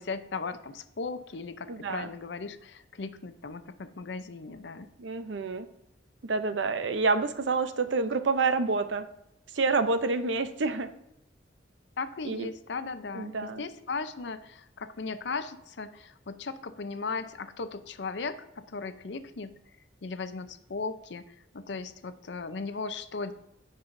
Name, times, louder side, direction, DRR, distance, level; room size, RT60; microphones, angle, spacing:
voice 1, 0.0-4.9 12.0-19.5 20.0-23.3, left 4 dB, 70° left, 11 dB, 0.6 m, -37 dB
voice 2, 1.7-2.1 5.0-5.7 6.3-9.1 9.5-10.9 12.2-12.5 13.1-13.6, right 4 dB, 75° right, 10 dB, 0.6 m, -28 dB
15.5 x 5.5 x 2.6 m, 0.83 s
head